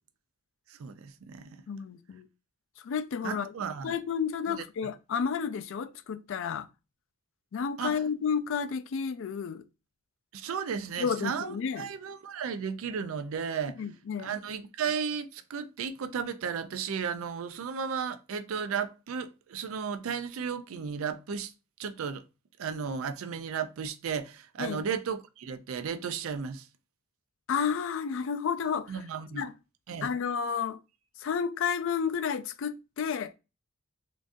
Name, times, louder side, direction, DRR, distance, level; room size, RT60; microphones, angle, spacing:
voice 1, 0.7-1.6 3.2-4.0 4.5-4.6 7.8-8.0 10.3-13.8 14.2-21.5 21.8-22.2 22.6-26.7 28.9-29.5 29.9-30.1, right 6 dB, 75° right, 0.4 m, -34 dB
voice 2, 1.7-2.3 2.8-3.5 3.8-6.7 7.5-9.6 11.0-11.9 13.8-14.4 24.6-24.8 27.5-29.1 29.3-29.5 30.0-30.8 31.2-33.3, left 6 dB, 60° left, 0.3 m, -31 dB
3.8 x 2.4 x 2.5 m
head